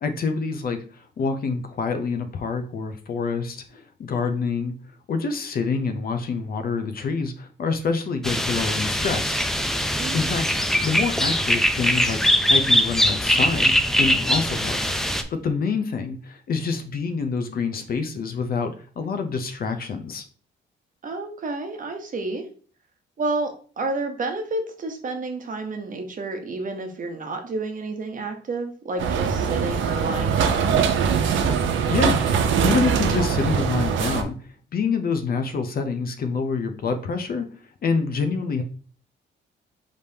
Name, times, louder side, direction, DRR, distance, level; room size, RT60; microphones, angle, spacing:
voice 1, 0.0-4.7 5.1-9.4 10.1-10.5 10.8-14.8 15.3-20.2 31.9-32.2 32.6-34.4 34.7-37.5 37.8-38.6, left 5 dB, 50° left, 7 dB, 0.6 m, -26 dB
sound 1, 8.2-15.2, equal, ahead, 0.4 m, -22 dB
voice 2, 10.0-10.3 21.0-22.5 23.2-30.8, right 3 dB, 40° right, 5 dB, 1.0 m, -30 dB
sound 2, 29.0-34.2, right 6 dB, 75° right, 0.6 m, -22 dB
5.1 x 3.4 x 2.8 m, 0.41 s
cardioid pair, 90°, 20 cm